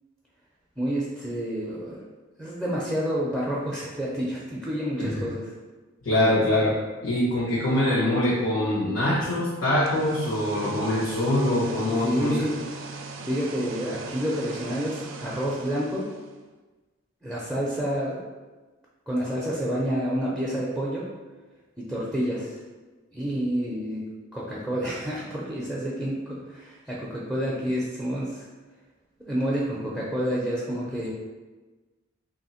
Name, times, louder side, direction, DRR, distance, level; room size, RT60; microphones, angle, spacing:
voice 1, 0.8-2.0 2.4-5.5 12.0-12.6 13.2-16.1 17.2-18.2 19.1-21.1 21.8-22.6 23.1-24.0 24.3-28.5 29.2-31.1, equal, 5° right, -7 dB, 0.5 m, -29 dB
voice 2, 6.0-6.7 7.0-12.4, left 1 dB, 85° left, -10 dB, 1.2 m, -24 dB
sound 1, 9.7-16.4, right 3 dB, 70° right, 0.4 m, -39 dB
3.0 x 2.8 x 4.2 m, 1.3 s
head